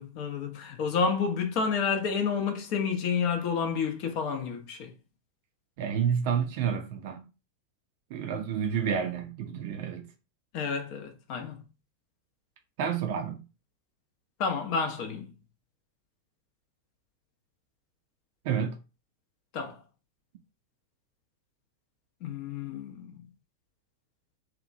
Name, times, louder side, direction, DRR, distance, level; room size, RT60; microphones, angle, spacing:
voice 1, 0.0-4.9 10.5-11.6 14.4-15.3 19.5-19.8 22.2-23.3, left 5 dB, 45° left, 0.6 m, -30 dB
voice 2, 5.8-7.2 8.1-10.1 12.8-13.4 18.4-18.8, right 7 dB, 50° right, 0.5 m, -29 dB
2.8 x 2.2 x 2.5 m
figure-of-eight pair, 90°, 0 cm